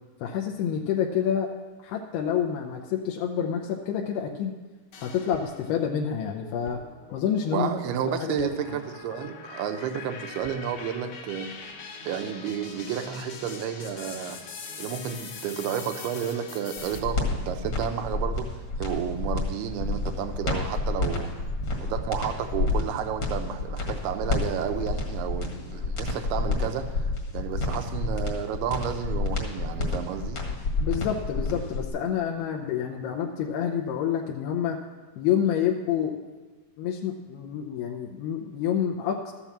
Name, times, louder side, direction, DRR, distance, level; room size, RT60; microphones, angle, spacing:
voice 1, 0.2-1.5 1.8-4.5 5.0-6.8 7.1-7.7 8.2-8.5 30.8-34.8 35.2-36.2 36.8-39.3, left 8 dB, 85° left, 2 dB, 2.7 m, -28 dB
sound 1, 4.9-5.8 6.3-17.0, left 5 dB, 65° left, 1.7 m, -43 dB
sound 2, 5.3-5.5 6.6-6.8 8.3-8.5 10.3-10.6, right 7 dB, 65° right, 2.4 m, -46 dB
voice 2, 7.5-11.5 12.1-14.4 14.8-18.5 18.8-21.3 21.8-30.4, right 8 dB, 85° right, 6 dB, 2.7 m, -31 dB
sound 3, 16.8-31.9, left 3 dB, 45° left, 1.6 m, -29 dB
13.5 x 6.9 x 7.3 m, 1.3 s
omnidirectional pair, 4.5 m